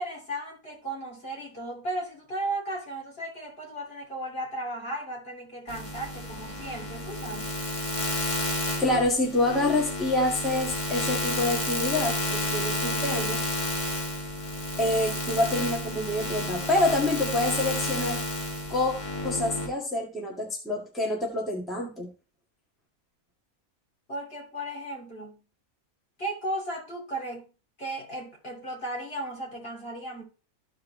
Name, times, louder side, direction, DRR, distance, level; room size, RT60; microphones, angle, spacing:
voice 1, 0.0-7.6 24.1-25.4 26.2-27.5 27.8-30.2, right 1 dB, 40° left, 3.1 m, -35 dB
sound 1, 5.7-19.7, left 1 dB, 25° left, 1.5 m, -31 dB
voice 2, 8.8-13.4 14.8-18.2 18.7-18.9 19.2-22.1, left 2 dB, ahead, 1.9 m, -27 dB
14.0 x 4.7 x 3.2 m
omnidirectional pair, 1.5 m